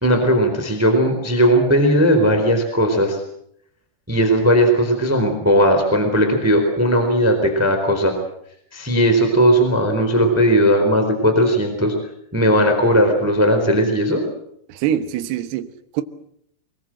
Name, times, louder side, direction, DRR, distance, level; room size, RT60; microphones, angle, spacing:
voice 1, 0.0-3.2 4.1-8.1 8.7-11.9 12.3-14.2, equal, 5° right, 3.3 m, -17 dB
voice 2, 14.7-16.0, right 10 dB, 70° right, 3.0 m, -24 dB
24.5 x 21.5 x 7.7 m
omnidirectional pair, 5.1 m